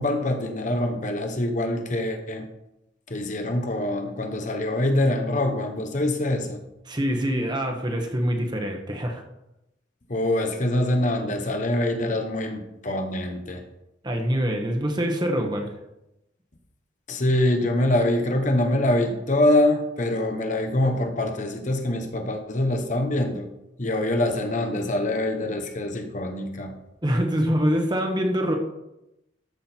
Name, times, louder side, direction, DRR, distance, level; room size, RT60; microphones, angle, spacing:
voice 1, 0.0-2.5 3.1-6.6 10.1-13.6 17.1-23.5 23.8-26.8, left 1 dB, 40° left, 5 dB, 1.1 m, -24 dB
voice 2, 6.9-9.2 14.0-15.7 27.0-28.6, equal, 25° right, 3 dB, 1.3 m, -25 dB
13.0 x 6.3 x 4.5 m, 0.88 s
head